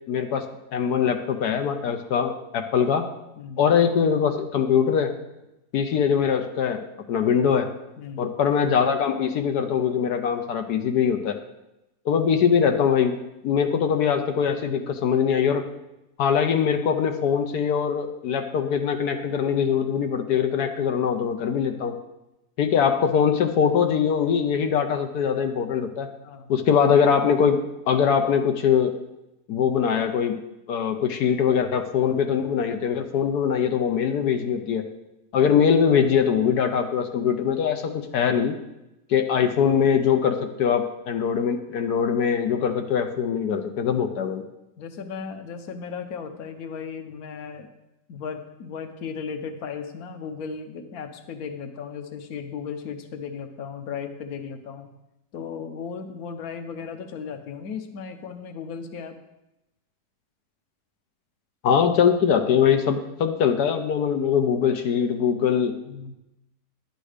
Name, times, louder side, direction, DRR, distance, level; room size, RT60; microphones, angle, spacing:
voice 1, 0.1-0.5 0.7-3.1 3.6-5.1 5.7-6.8 7.1-7.7 8.2-11.4 12.0-13.1 13.4-15.6 16.2-21.9 22.6-26.1 26.5-29.0 29.5-30.4 30.7-34.8 35.3-38.6 39.1-44.4 61.6-65.7, left 7 dB, 90° left, 5 dB, 1.4 m, -22 dB
voice 2, 3.4-3.7 8.0-8.3 13.5-13.6 26.2-26.5 39.4-39.5 44.8-47.7 48.1-54.9 55.3-59.2 65.8-66.1, left 6 dB, 70° left, 7 dB, 1.4 m, -36 dB
11.0 x 9.1 x 5.0 m, 0.92 s
omnidirectional pair, 1.6 m